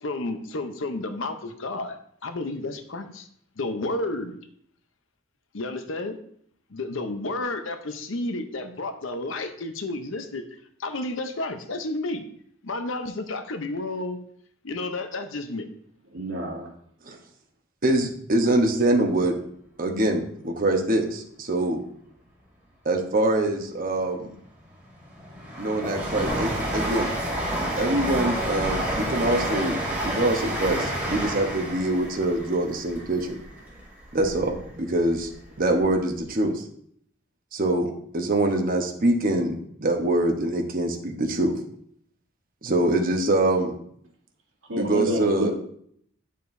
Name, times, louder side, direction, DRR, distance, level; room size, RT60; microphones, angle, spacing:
voice 1, 0.0-3.3 3.6-4.4 5.5-6.2 6.7-10.4 10.8-12.2 12.6-14.2 14.6-15.7, left 2 dB, 70° left, 8 dB, 0.8 m, -31 dB
voice 2, 16.1-16.7 44.7-45.5, equal, 75° right, -2 dB, 2.1 m, -28 dB
voice 3, 17.8-19.3 19.8-21.8 22.8-24.3 25.6-27.1 27.8-33.4 34.1-35.3 35.6-36.6 37.5-41.5 42.6-43.7 44.8-45.5, right 1 dB, 45° right, 3 dB, 1.0 m, -24 dB
Train, 24.4-34.6 35.0-35.9 36.2-36.3, right 1 dB, 10° right, 1.9 m, -30 dB
8.9 x 6.6 x 2.6 m, 0.66 s
head